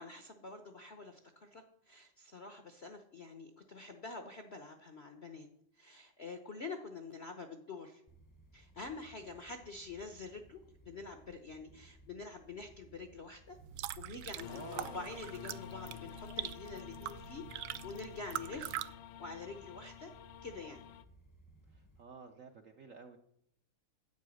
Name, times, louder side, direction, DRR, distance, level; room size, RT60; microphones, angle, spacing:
voice 1, 0.0-5.5 5.8-8.0 8.5-13.6 14.0-18.9 19.2-20.1 20.4-20.8, left 3 dB, 55° left, 6 dB, 0.7 m, -47 dB
sound 1, 8.1-22.0, right 1 dB, 20° left, 0.4 m, -62 dB
sound 2, 13.5-18.9, right 13 dB, 80° right, 1.3 m, -43 dB
voice 2, 14.2-15.1 21.7-23.2, right 5 dB, 60° right, 5 dB, 0.8 m, -52 dB
sound 3, 14.4-21.0, left 11 dB, 80° left, 1.4 m, -50 dB
10.0 x 8.4 x 6.3 m, 0.72 s
omnidirectional pair, 2.2 m